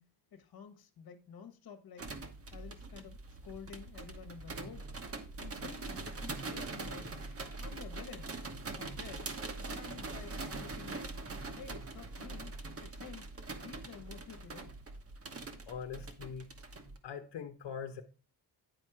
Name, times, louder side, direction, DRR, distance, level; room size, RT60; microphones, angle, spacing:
voice 1, 0.0-2.2 2.5-4.9 5.4-7.2 7.6-8.3 8.8-9.3 9.6-11.2 11.5-13.3 13.6-14.7, left 7 dB, 60° left, 1.3 m, -51 dB
sound 1, 2.0-17.0, right 3 dB, 35° right, 1.1 m, -43 dB
voice 2, 15.7-16.5 17.0-18.0, left 7 dB, 85° left, 1.1 m, -42 dB
9.7 x 4.5 x 4.8 m
cardioid pair, 130°, 41 cm